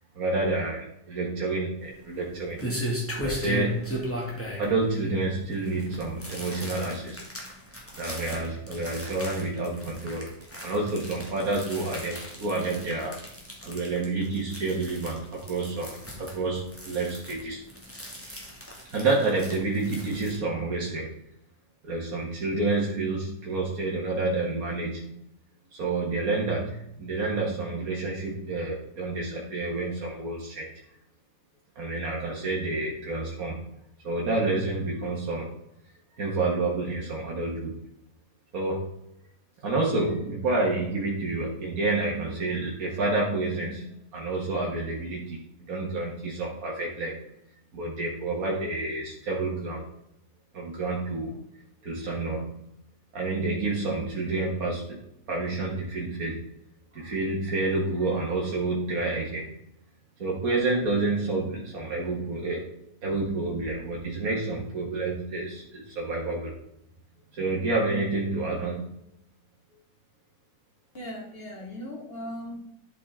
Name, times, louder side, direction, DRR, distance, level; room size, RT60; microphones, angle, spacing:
voice 1, 0.1-2.6 3.2-4.0 4.6-7.2 8.0-10.3 10.6-13.2 13.6-17.6 18.9-21.1 21.8-25.2 25.7-30.7 31.8-33.6 34.0-35.5 36.2-37.8 38.5-38.9 39.6-47.2 47.7-49.9 50.5-51.4 51.8-52.7 53.1-55.0 55.3-56.5 56.9-59.6 60.2-62.7 63.0-66.5 67.3-68.9, right 3 dB, 90° right, -3 dB, 2.0 m, -29 dB
sound 1, 1.8-20.4, equal, 10° left, 1.9 m, -37 dB
voice 2, 70.9-72.6, equal, 45° left, -1 dB, 2.4 m, -38 dB
11.5 x 5.7 x 3.6 m, 0.79 s
omnidirectional pair, 1.5 m